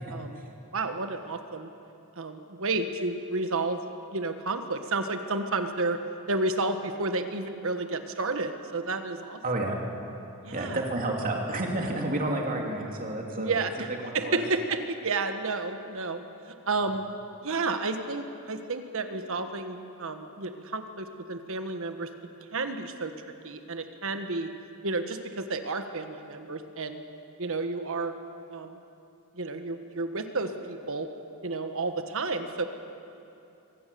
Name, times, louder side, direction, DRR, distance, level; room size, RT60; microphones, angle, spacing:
voice 1, 0.1-0.4 0.7-1.7 2.2-3.8 4.1-6.0 6.3-9.4 10.4-10.8 13.3-17.0 17.4-22.1 22.5-23.1 23.4-24.5 24.8-27.0 27.4-28.2 28.5-28.8 29.3-31.1 31.4-32.6, right 3 dB, 65° right, 7 dB, 1.4 m, -31 dB
voice 2, 9.4-9.8 10.5-13.6 14.0-14.4, right 1 dB, 40° right, 0 dB, 2.8 m, -30 dB
24.5 x 18.0 x 6.9 m, 2.8 s
head